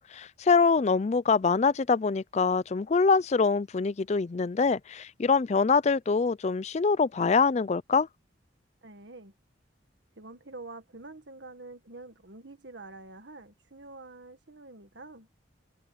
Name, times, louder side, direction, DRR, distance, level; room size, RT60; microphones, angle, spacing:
voice 1, 0.0-8.1, left 4 dB, 35° left, 0.4 m, -24 dB
voice 2, 8.8-9.3 10.2-15.3, right 2 dB, 70° right, 1.8 m, -46 dB
head